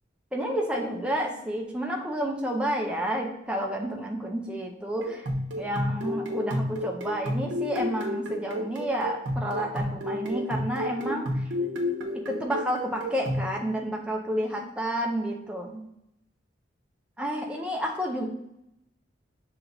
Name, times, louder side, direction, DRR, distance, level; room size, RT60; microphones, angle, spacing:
voice 1, 0.3-5.2 5.6-11.3 12.3-15.8 17.2-18.3, equal, 5° right, -1 dB, 0.4 m, -30 dB
sound 1, 5.0-13.5, left 1 dB, 75° right, 0.7 m, -31 dB
6.5 x 2.9 x 2.6 m, 0.84 s
head